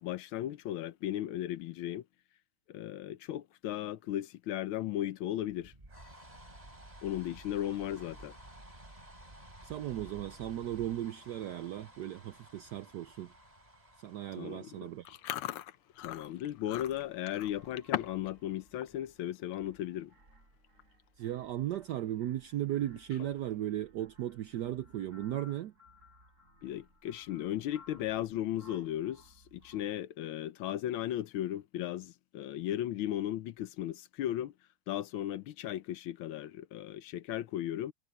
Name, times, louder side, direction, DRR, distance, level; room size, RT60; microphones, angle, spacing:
voice 1, 0.0-2.0 2.7-5.7 7.0-8.3 14.4-14.9 16.0-20.1 26.6-34.5 34.9-37.9, left 12 dB, 75° left, 1.5 m, -36 dB
sound 1, 5.4-15.9, right 1 dB, 15° right, 3.7 m, -54 dB
voice 2, 9.6-13.3 14.0-15.0 21.2-25.7, right 12 dB, 75° right, 1.0 m, -36 dB
Chewing mastication, 15.0-18.3 18.6-18.9 19.4-19.6 20.3-20.4 20.6-21.0 21.4-21.5 23.0-23.5, left 13 dB, 90° left, 1.7 m, -40 dB
sound 2, 15.9-29.9, left 1 dB, 35° right, 5.8 m, -61 dB
omnidirectional pair, 2.4 m